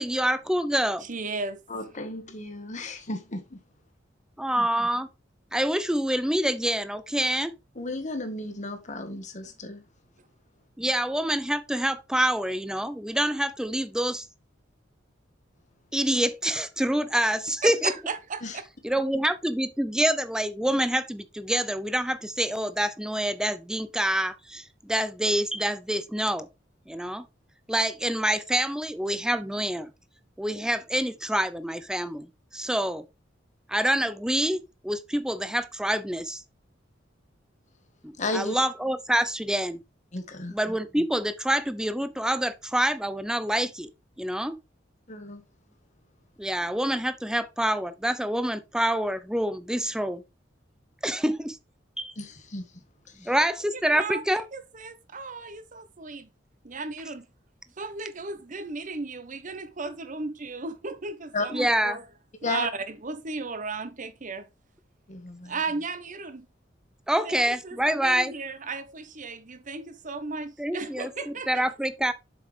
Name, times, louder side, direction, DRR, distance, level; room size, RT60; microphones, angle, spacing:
voice 1, 0.0-1.1 4.4-5.1 5.5-7.5 10.8-14.3 15.9-17.9 18.8-26.5 26.9-27.2 27.7-29.9 30.4-33.0 33.7-36.4 38.0-39.8 40.5-43.9 44.2-44.6 46.4-50.2 51.0-51.6 52.0-52.1 53.2-54.4 61.5-62.0 67.1-68.3 70.6-71.1 71.5-72.1, right 1 dB, 5° right, 0.6 m, -26 dB
voice 2, 1.0-1.6 17.6-18.4 53.7-56.3 56.6-57.3 57.8-62.1 62.4-64.5 65.4-66.5 67.2-71.7, right 4 dB, 45° right, 0.9 m, -35 dB
voice 3, 1.7-3.6 7.7-9.8 18.4-18.6 38.2-38.6 40.1-40.6 45.1-45.4 52.2-52.7 53.1-53.4 61.3-61.5 62.4-62.7 65.1-65.6, left 2 dB, 40° left, 1.4 m, -34 dB
7.3 x 5.7 x 3.3 m
head